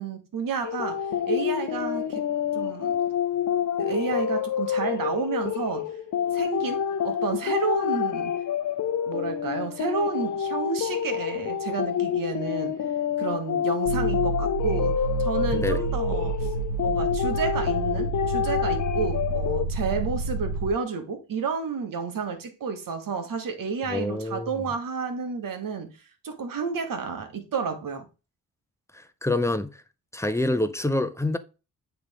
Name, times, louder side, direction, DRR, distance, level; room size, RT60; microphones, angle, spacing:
voice 1, 0.0-2.2 2.5-2.9 3.8-5.9 6.3-8.3 9.1-12.7 13.2-16.5 16.8-25.9 26.2-28.1, right 5 dB, 70° right, 1.4 m, -31 dB
sound 1, 0.6-19.7, left 9 dB, 55° left, 0.6 m, -28 dB
sound 2, 13.8-20.7, right 3 dB, 90° right, 0.8 m, -29 dB
voice 2, 15.5-15.8 23.9-24.6 28.9-29.7 30.1-31.4, left 2 dB, 10° left, 0.7 m, -27 dB
8.7 x 3.4 x 3.5 m
cardioid pair, 70°, 34 cm